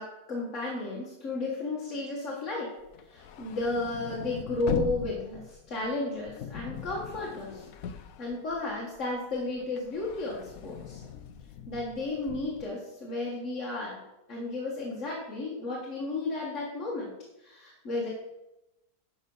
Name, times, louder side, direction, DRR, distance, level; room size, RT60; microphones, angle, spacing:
voice 1, 0.0-2.7 3.1-7.7 8.2-11.0 11.7-14.0 14.3-17.1 17.4-18.1, left 2 dB, 50° left, -4 dB, 1.9 m, -33 dB
sound 1, 2.9-9.0 9.3-12.6, left 8 dB, 70° left, 1.1 m, -40 dB
10.5 x 5.6 x 5.5 m, 0.95 s
omnidirectional pair, 1.6 m